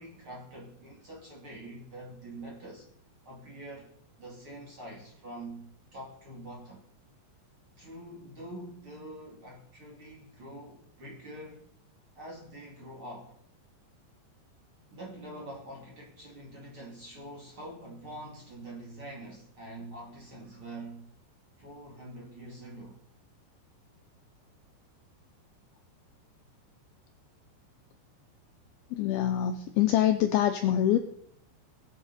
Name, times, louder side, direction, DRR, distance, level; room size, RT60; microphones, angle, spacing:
voice 1, 0.0-2.9 3.2-3.9 4.2-6.8 7.8-11.6 12.2-13.4 14.9-21.1 21.6-23.0, right 1 dB, 35° right, 2.5 m, -45 dB
voice 2, 28.9-31.0, left 11 dB, 90° left, 2.1 m, -25 dB
21.0 x 8.2 x 4.2 m
omnidirectional pair, 5.3 m